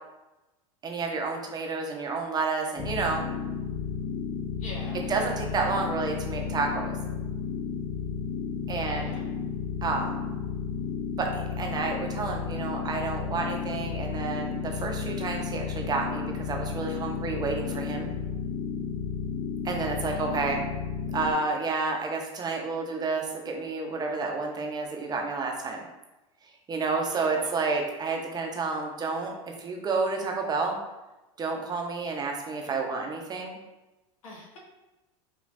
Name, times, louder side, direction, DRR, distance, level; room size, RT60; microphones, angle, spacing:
voice 1, 0.8-3.2 5.1-7.0 8.7-9.1 9.8-10.1 11.2-18.1 19.6-20.6 21.1-25.9 26.7-30.8 31.4-33.6, right 4 dB, 25° right, 2 dB, 0.7 m, -30 dB
sound 1, 2.8-21.3, left 6 dB, 45° left, 0.6 m, -33 dB
voice 2, 4.6-5.4 8.7-9.3 20.0-20.6 27.1-27.7 34.2-34.6, left 1 dB, 90° left, -3 dB, 1.2 m, -45 dB
5.2 x 2.3 x 2.6 m, 1.0 s
hypercardioid pair, 110°, 17 cm